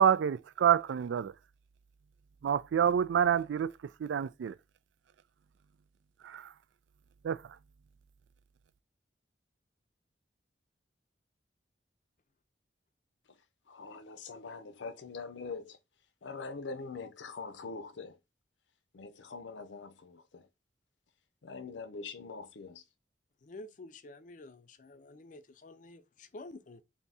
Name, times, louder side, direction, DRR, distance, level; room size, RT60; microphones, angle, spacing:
voice 1, 0.0-1.3 2.4-3.7 4.0-4.5 6.2-6.5 7.2-7.4, right 8 dB, 85° right, 0.3 m, -27 dB
voice 2, 13.7-15.8 16.2-18.2 18.9-20.5 21.4-22.8, left 4 dB, 90° left, 0.6 m, -43 dB
voice 3, 23.4-26.8, left 2 dB, 45° left, 0.4 m, -49 dB
3.5 x 2.7 x 4.0 m
head